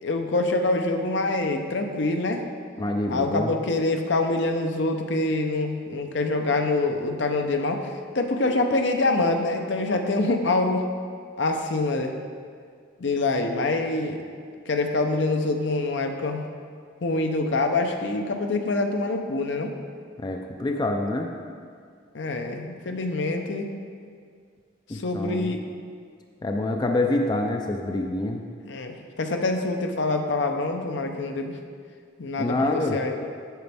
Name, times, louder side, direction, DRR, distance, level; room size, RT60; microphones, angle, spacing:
voice 1, 0.0-2.4 3.1-10.9 11.4-12.1 13.0-14.2 14.7-16.4 17.0-19.7 22.1-23.7 24.9-25.6 28.7-31.5 32.2-33.3, left 2 dB, 65° left, 5 dB, 0.6 m, -25 dB
voice 2, 2.8-3.5 20.2-21.3 24.9-25.5 26.4-28.4 32.4-33.0, left 2 dB, 20° left, 3 dB, 0.4 m, -26 dB
9.1 x 6.8 x 3.4 m, 2.1 s
head